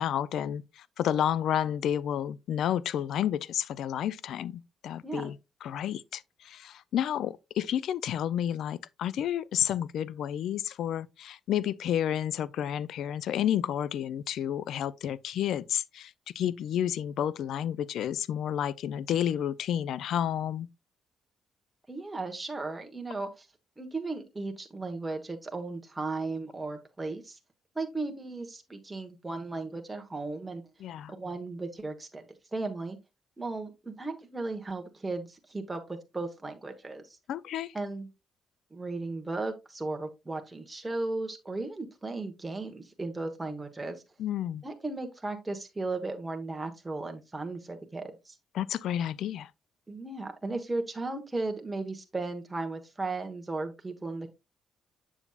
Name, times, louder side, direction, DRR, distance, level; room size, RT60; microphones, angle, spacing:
voice 1, 0.0-20.7 30.8-31.1 37.3-37.7 44.2-44.6 48.5-49.5, left 10 dB, 75° left, 0.4 m, -31 dB
voice 2, 21.9-23.5 23.8-27.4 27.7-30.6 31.1-32.3 32.5-33.0 33.4-37.2 37.7-38.1 38.7-44.0 44.6-48.4 49.9-54.3, right 3 dB, 15° right, 1.2 m, -36 dB
7.1 x 7.0 x 2.3 m
cardioid pair, 90°, 0 cm